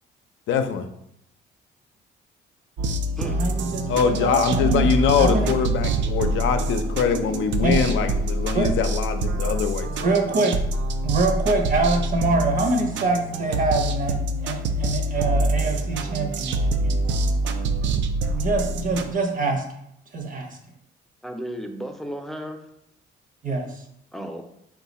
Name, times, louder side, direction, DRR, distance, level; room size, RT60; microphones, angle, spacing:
voice 1, 0.5-0.9 3.9-10.2, left 7 dB, 75° left, 7 dB, 0.5 m, -23 dB
sound 1, 2.8-19.1, right 2 dB, 65° right, 0.4 m, -25 dB
voice 2, 3.2-5.6 7.6-7.8 8.5-8.7 10.0-10.6 11.0-17.0 18.3-19.6 20.1-20.6 23.4-23.8, right 3 dB, 40° right, 3 dB, 0.8 m, -25 dB
voice 3, 21.2-22.6 24.1-24.4, equal, ahead, 4 dB, 0.5 m, -33 dB
4.6 x 2.4 x 4.1 m, 0.78 s
cardioid pair, 90°, 20 cm